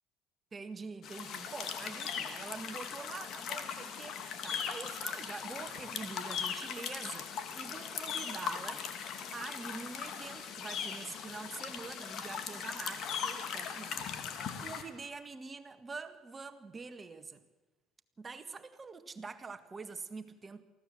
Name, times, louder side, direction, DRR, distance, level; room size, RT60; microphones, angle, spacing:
voice 1, 0.5-8.9 9.3-14.0 14.3-17.4 18.2-20.6, right 4 dB, 30° right, 1.8 m, -45 dB
sound 1, 1.0-14.8, left 7 dB, 60° left, 2.6 m, -39 dB
24.0 x 15.0 x 7.8 m
supercardioid pair, 75°, 0 cm